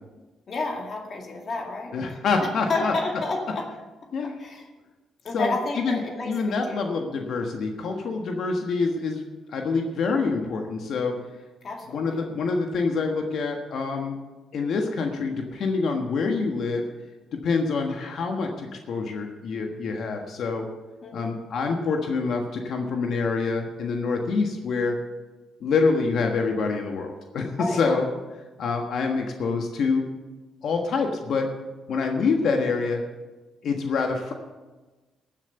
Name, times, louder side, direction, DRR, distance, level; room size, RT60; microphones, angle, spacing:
voice 1, 0.5-3.7 4.4-4.7 5.2-6.9 11.6-12.4 21.0-21.3 27.6-28.0, left 3 dB, 50° left, 1 dB, 2.2 m, -31 dB
voice 2, 1.9-2.9 4.1-4.3 5.3-6.0 6.2-9.2 9.5-11.1 11.9-14.2 14.5-16.8 17.4-20.7 21.1-25.0 25.6-28.1 28.6-30.0 30.6-31.5 31.9-33.0 33.6-34.3, left 4 dB, 65° left, 3 dB, 1.4 m, -26 dB
14.5 x 7.5 x 6.7 m, 1.2 s
cardioid pair, 90°, 0 cm